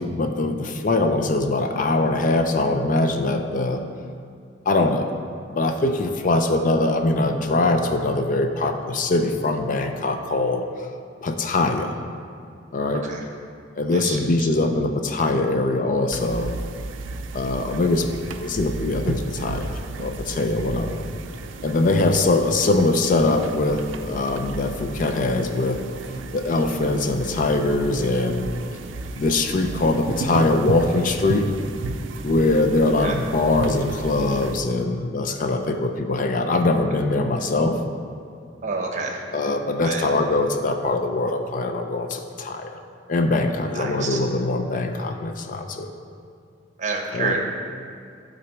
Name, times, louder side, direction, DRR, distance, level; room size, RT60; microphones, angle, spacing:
voice 1, 0.0-3.8 4.7-5.1 5.5-10.9 11.2-12.0 12.7-13.0 13.8-16.5 17.3-21.0 21.6-25.8 26.3-28.5 29.1-31.5 32.2-37.8 39.3-42.8 43.1-45.9 47.1-47.3, left 2 dB, 45° left, 6 dB, 0.5 m, -22 dB
voice 2, 13.9-14.5 33.0-33.2 38.6-39.2 39.8-40.1 43.7-44.2 46.8-47.4, right 4 dB, 40° right, 2 dB, 0.9 m, -28 dB
sound 1, 16.1-34.6, right 3 dB, 85° right, 0.4 m, -33 dB
12.0 x 4.0 x 4.5 m, 2.4 s
head